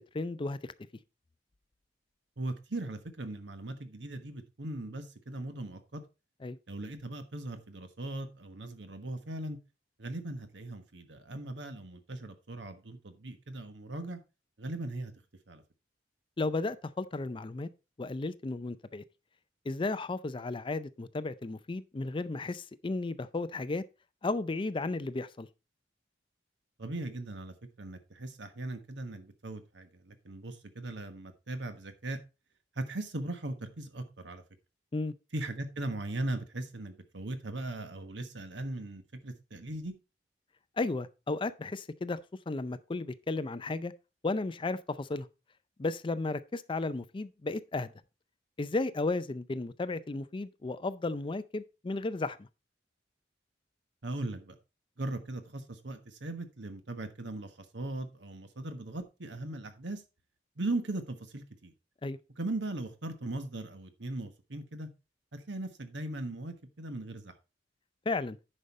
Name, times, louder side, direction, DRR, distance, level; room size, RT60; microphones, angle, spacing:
voice 1, 0.1-0.6 6.4-6.6 16.4-17.7 18.0-19.0 19.7-23.8 24.2-25.5 34.9-35.1 40.8-42.2 42.5-43.9 44.2-45.3 45.8-47.9 48.6-52.5 62.0-62.2 68.1-68.4, left 3 dB, 30° left, 0.4 m, -34 dB
voice 2, 2.4-6.0 6.7-9.6 10.0-14.2 14.6-15.1 15.5-15.6 26.8-32.2 32.8-34.4 35.3-39.9 54.0-54.6 55.0-60.0 60.6-61.7 62.4-64.9 65.3-67.3, right 2 dB, 70° right, 1.3 m, -39 dB
10.0 x 5.4 x 4.1 m
head